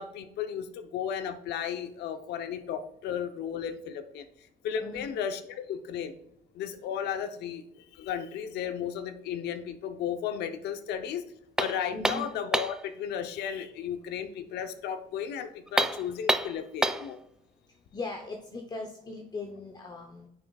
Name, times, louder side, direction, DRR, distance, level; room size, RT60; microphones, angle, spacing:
voice 1, 0.0-4.3 4.6-6.1 6.5-11.2 11.6-17.2, left 8 dB, 80° left, 9 dB, 0.8 m, -34 dB
sound 1, 11.6-12.9 15.7-17.1, right 1 dB, 5° right, 0.3 m, -28 dB
voice 2, 11.9-12.3 17.9-20.3, left 3 dB, 25° left, 2 dB, 0.8 m, -39 dB
9.5 x 6.9 x 2.4 m, 0.75 s
cardioid pair, 110°, 17 cm